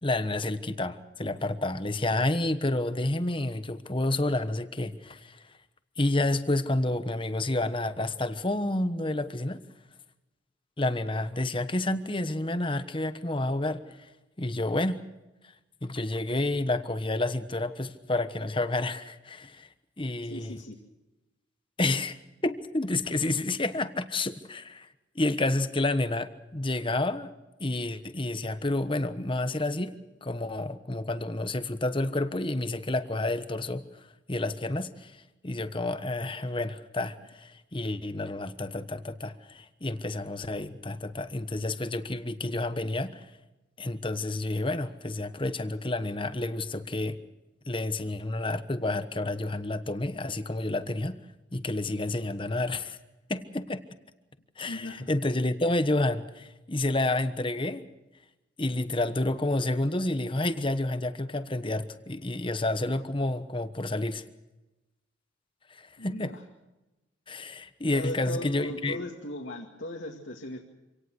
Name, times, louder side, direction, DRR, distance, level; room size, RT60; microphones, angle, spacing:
voice 1, 0.0-5.4 6.0-9.6 10.8-14.1 14.4-15.0 15.8-19.7 20.0-20.6 21.8-22.2 22.4-24.9 25.1-27.3 27.6-33.9 34.3-35.2 35.4-43.2 43.8-47.2 47.7-51.2 51.5-53.0 53.3-53.8 54.6-57.9 58.6-64.2 65.7-66.3 67.3-69.0, left 2 dB, 25° left, 11 dB, 1.2 m, -29 dB
voice 2, 20.3-20.8 54.7-55.0 66.0-66.4 67.9-70.6, left 1 dB, 70° left, 0 dB, 2.3 m, -38 dB
26.5 x 18.0 x 6.4 m, 1.0 s
head